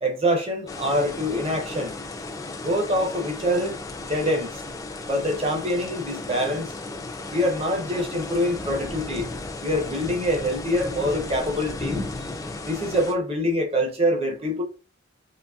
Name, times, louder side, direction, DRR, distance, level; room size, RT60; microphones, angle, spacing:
voice 1, 0.0-1.9 2.6-4.6 5.0-6.7 7.3-9.3 9.6-12.3 12.6-14.6, equal, 30° right, 0.6 m, -25 dB
sound 1, 0.7-13.1, left 2 dB, 15° left, 0.3 m, -35 dB
3.9 x 2.9 x 2.3 m
head